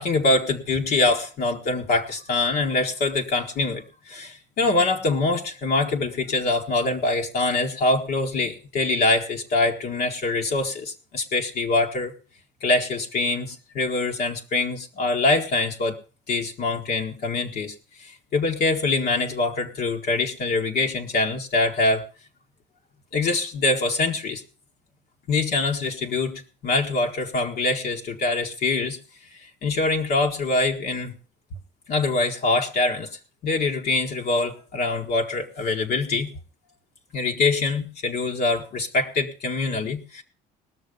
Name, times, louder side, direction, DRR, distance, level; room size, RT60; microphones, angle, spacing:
voice 1, 0.0-12.1 12.6-16.0 16.3-22.1 23.1-24.4 25.3-29.0 29.3-31.2 31.9-36.3 37.1-40.2, left 3 dB, 65° left, 1 dB, 1.8 m, -24 dB
19.5 x 6.6 x 5.4 m, 0.36 s
cardioid pair, 110°, 17 cm